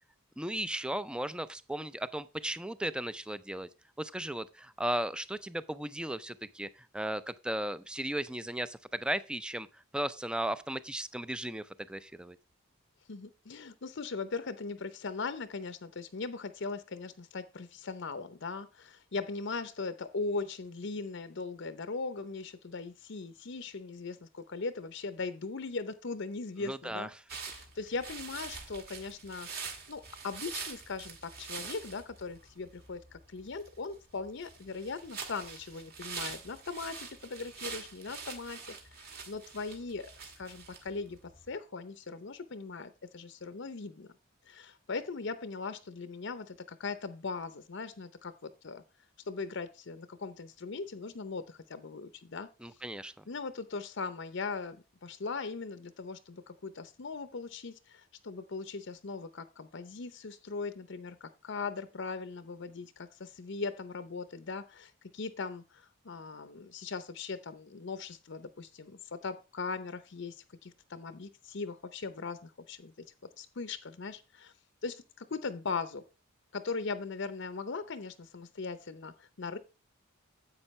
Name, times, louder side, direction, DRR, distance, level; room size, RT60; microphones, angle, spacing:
voice 1, 0.4-3.7 4.0-9.7 9.9-12.4 26.6-27.1 52.6-53.1, right 1 dB, 5° right, 15 dB, 0.4 m, -36 dB
voice 2, 13.1-27.1 27.5-29.5 29.9-40.1 40.4-44.1 44.5-48.8 49.3-52.8 53.3-73.1 73.4-74.5 74.8-76.0 76.5-79.6, left 4 dB, 60° left, 12 dB, 0.6 m, -39 dB
sound 1, 27.3-41.5, right 5 dB, 45° right, 2.0 m, -45 dB
9.9 x 8.0 x 3.1 m, 0.29 s
head